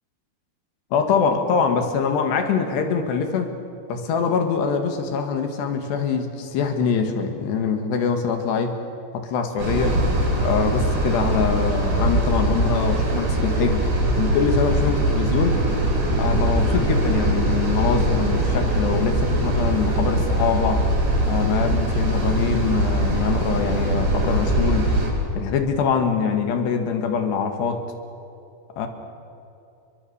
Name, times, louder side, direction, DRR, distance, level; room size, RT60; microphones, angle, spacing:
voice 1, 0.9-3.5 3.9-8.8 9.1-10.0 10.4-13.9 14.2-15.6 16.1-20.9 21.3-24.9 25.4-27.9 28.8-28.9, left 6 dB, 65° left, 6 dB, 3.7 m, -23 dB
sound 1, 9.6-25.1, right 1 dB, 55° right, 7.5 m, -22 dB
30.0 x 23.0 x 7.1 m, 2.8 s
omnidirectional pair, 5.8 m